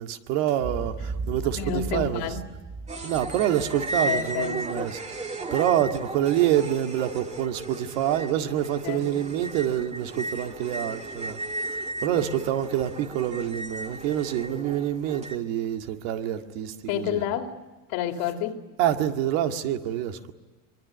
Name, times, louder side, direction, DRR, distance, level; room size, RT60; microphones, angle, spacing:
voice 1, 0.0-2.2 3.0-17.2 18.8-20.3, right 11 dB, 80° right, 2.1 m, -27 dB
Boom, 0.6-4.9, right 3 dB, 35° right, 4.2 m, -36 dB
voice 2, 1.6-2.4 4.0-4.6 8.8-9.0 12.0-12.3 16.9-17.6 17.9-18.6, left 9 dB, 70° left, 2.8 m, -29 dB
sound 1, 2.9-15.4, right 2 dB, 15° right, 2.0 m, -35 dB
23.5 x 23.0 x 9.4 m
supercardioid pair, 120°, 40 cm